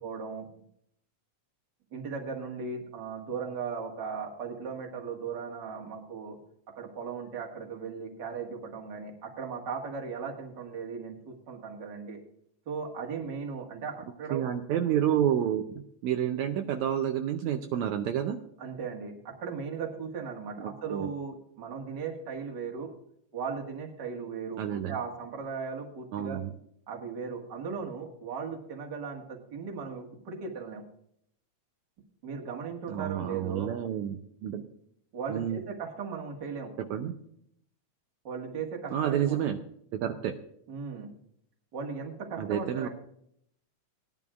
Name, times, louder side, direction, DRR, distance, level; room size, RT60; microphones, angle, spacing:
voice 1, 0.0-0.5 1.9-6.4 6.8-12.2 12.7-14.4 18.6-22.9 23.3-24.6 24.9-26.4 26.9-30.8 32.2-33.7 35.1-36.7 38.2-39.4 40.7-41.1 41.7-42.9, right 5 dB, 40° right, 1 dB, 2.0 m, -37 dB
voice 2, 14.3-15.6 16.0-18.4 20.6-21.1 24.6-25.0 26.1-26.5 32.9-34.7 35.3-35.6 36.9-37.1 38.9-39.6 39.9-40.3 42.4-42.9, right 10 dB, 75° right, 5 dB, 2.0 m, -29 dB
18.0 x 10.5 x 2.4 m, 0.69 s
omnidirectional pair, 3.5 m